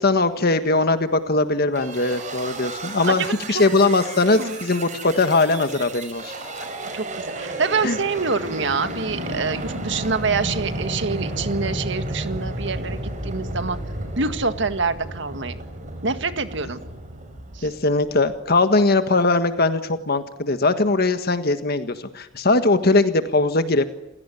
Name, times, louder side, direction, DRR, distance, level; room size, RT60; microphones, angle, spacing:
voice 1, 0.0-6.3 7.8-8.0 17.6-23.8, left 3 dB, 55° left, 9 dB, 1.6 m, -20 dB
sound 1, 1.7-18.4, right 1 dB, 40° right, 5.6 m, -32 dB
voice 2, 3.1-3.6 4.3-4.6 6.9-13.8 14.2-15.6 16.0-16.8 17.5-17.7, right 4 dB, 65° right, 9 dB, 1.9 m, -26 dB
29.0 x 16.5 x 10.0 m, 0.94 s
head